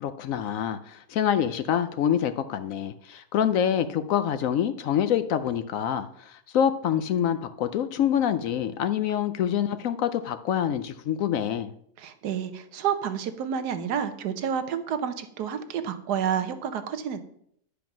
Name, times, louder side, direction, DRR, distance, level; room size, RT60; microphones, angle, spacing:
voice 1, 0.0-11.7, left 9 dB, 70° left, 10 dB, 0.8 m, -26 dB
voice 2, 12.0-17.2, right 8 dB, 85° right, 9 dB, 1.4 m, -29 dB
10.5 x 5.1 x 5.9 m, 0.69 s
omnidirectional pair, 1.7 m